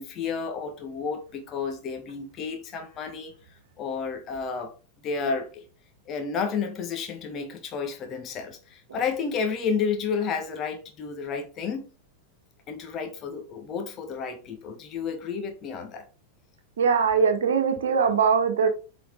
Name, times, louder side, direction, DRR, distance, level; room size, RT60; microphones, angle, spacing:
voice 1, 0.0-3.3 3.8-4.7 5.0-5.6 6.0-11.9 12.7-16.0, left 5 dB, 30° left, 1.6 m, -31 dB
voice 2, 16.8-18.7, right 6 dB, 60° right, 1.4 m, -21 dB
7.7 x 4.5 x 3.8 m
figure-of-eight pair, 90°, 0 cm